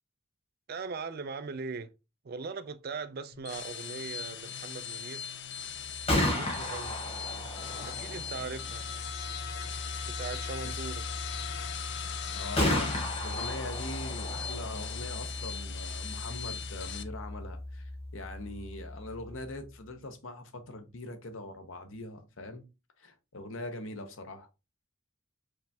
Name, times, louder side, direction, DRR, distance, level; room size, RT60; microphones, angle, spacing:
voice 1, 0.7-1.9 2.2-5.3 6.1-7.0 7.8-8.9 10.1-11.0, right 4 dB, 50° right, 0.4 m, -40 dB
sound 1, 3.3-17.0, left 8 dB, 60° left, 0.4 m, -39 dB
Gunshot gunfire, 5.8-19.6, left 1 dB, 30° left, 1.3 m, -35 dB
voice 2, 12.3-13.0 13.2-22.7 23.0-24.5, left 2 dB, 85° left, 0.9 m, -42 dB
5.0 x 3.4 x 2.8 m
head